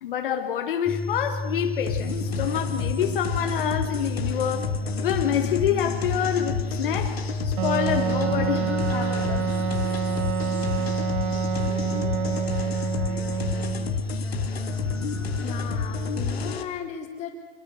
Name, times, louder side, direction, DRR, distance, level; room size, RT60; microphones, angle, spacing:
voice 1, 0.0-9.5, left 9 dB, 60° left, 1.9 m, -27 dB
sound 1, 0.9-16.5, left 1 dB, 5° left, 0.7 m, -31 dB
sound 2, 1.9-16.6, left 7 dB, 90° left, 2.5 m, -32 dB
Wind instrument woodwind instrument, 7.6-14.0, right 9 dB, 40° right, 1.7 m, -28 dB
voice 2, 15.3-17.3, left 8 dB, 20° left, 4.1 m, -36 dB
26.5 x 21.5 x 6.7 m
hypercardioid pair, 150°, 30 cm